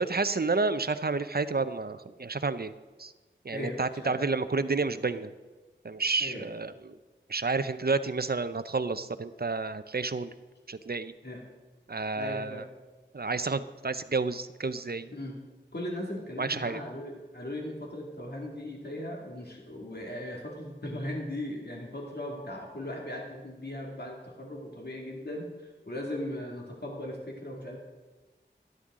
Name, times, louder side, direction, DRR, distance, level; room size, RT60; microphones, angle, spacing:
voice 1, 0.0-2.7 3.0-3.1 3.4-5.3 5.8-7.0 7.3-10.3 10.7-11.1 11.9-12.6 13.1-15.1 16.4-16.8, right 3 dB, 55° right, 12 dB, 0.6 m, -30 dB
voice 2, 3.5-4.2 6.2-6.4 11.2-11.4 12.2-12.7 15.1-15.4 15.7-27.8, left 1 dB, 55° left, -1 dB, 2.2 m, -38 dB
12.5 x 12.0 x 3.7 m, 1.3 s
wide cardioid pair, 45°, 20 cm